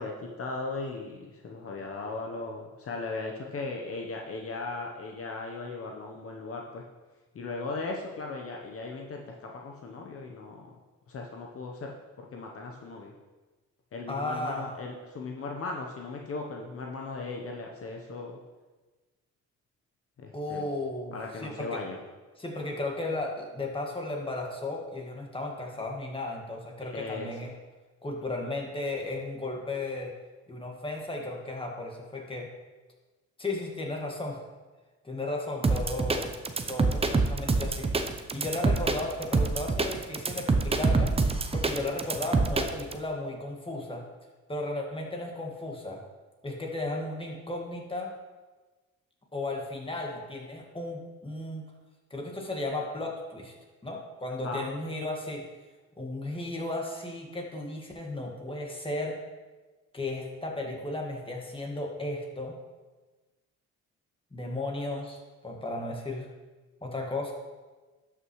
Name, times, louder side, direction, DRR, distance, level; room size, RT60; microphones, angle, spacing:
voice 1, 0.0-6.8 7.3-10.7 11.1-11.9 12.2-13.1 13.9-18.4 20.2-20.7 21.1-22.0 26.8-27.3 54.4-54.7, left 3 dB, 50° left, 1 dB, 0.9 m, -37 dB
voice 2, 14.1-14.8 20.3-21.2 21.4-21.8 22.4-27.5 28.0-30.1 30.5-32.5 33.4-34.4 35.0-36.3 36.7-37.9 38.3-41.2 41.5-44.0 44.5-46.0 46.4-48.1 49.3-51.6 52.1-53.5 53.8-55.4 56.0-59.2 59.9-62.6 64.3-66.3 66.8-67.3, left 2 dB, 15° left, 0 dB, 1.7 m, -35 dB
sound 1, 35.6-43.0, right 3 dB, 20° right, 0.6 m, -26 dB
12.0 x 5.8 x 3.1 m, 1.3 s
cardioid pair, 90°, 30 cm